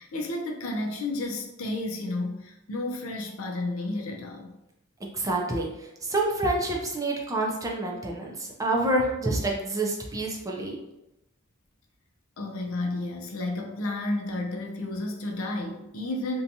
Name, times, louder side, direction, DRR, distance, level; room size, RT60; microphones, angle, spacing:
voice 1, 0.0-4.5 12.4-16.4, left 2 dB, 70° left, 1 dB, 0.5 m, -32 dB
voice 2, 5.1-5.7 6.0-10.8, right 2 dB, 15° right, -1 dB, 0.3 m, -27 dB
2.7 x 2.2 x 2.6 m, 0.91 s
head